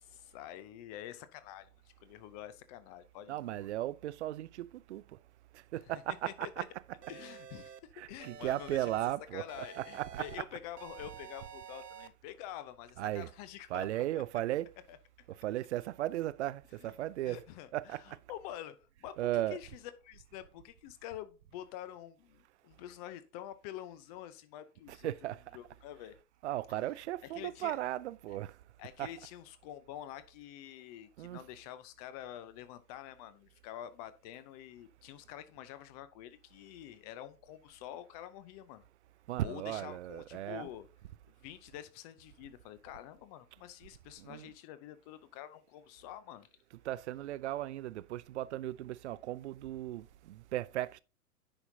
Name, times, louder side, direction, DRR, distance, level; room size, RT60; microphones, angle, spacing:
voice 1, 0.0-1.7 2.0-3.6 6.2-6.7 7.1-7.7 8.1-8.9 9.3-14.2 14.9-15.0 16.8-17.0 17.2-25.1 25.5-26.2 27.2-27.8 28.3-28.4 28.8-38.8 39.4-40.9 41.4-46.5, left 12 dB, 25° left, 0.6 m, -47 dB
voice 2, 3.3-5.0 5.7-6.7 8.0-10.3 13.0-13.3 13.7-14.7 15.3-17.4 17.7-18.2 19.2-19.6 24.9-25.4 26.4-28.5 29.0-29.1 31.2-31.4 39.3-40.7 44.2-44.5 46.9-51.0, right 14 dB, 50° right, 0.4 m, -36 dB
sound 1, 7.0-7.8 8.2-9.1 9.5-10.4 10.8-12.1, right 7 dB, 85° right, 0.7 m, -50 dB
9.8 x 5.7 x 2.7 m
figure-of-eight pair, 105°, 47 cm